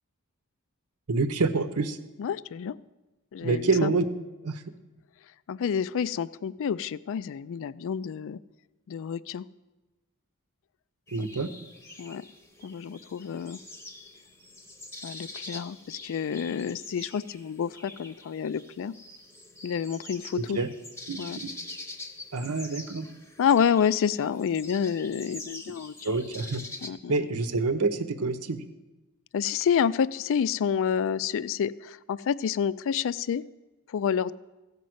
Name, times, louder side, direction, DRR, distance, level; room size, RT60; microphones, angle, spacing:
voice 1, 1.1-2.0 3.4-4.0 4.4-4.6 11.1-11.5 20.5-20.7 21.1-21.5 22.3-23.1 26.0-26.6 27.1-28.6, right 3 dB, 90° right, 10 dB, 0.9 m, -27 dB
voice 2, 2.2-2.8 3.3-3.9 5.5-8.4 8.9-9.4 11.2-11.3 12.0-12.2 12.6-13.6 15.0-18.9 19.6-20.6 21.2-21.4 23.4-26.1 26.8-27.3 29.3-33.4 33.9-34.3, left 7 dB, 60° left, 18 dB, 0.3 m, -28 dB
sound 1, 11.1-26.9, left 2 dB, 10° left, 0.8 m, -45 dB
15.0 x 5.3 x 7.8 m, 1.1 s
head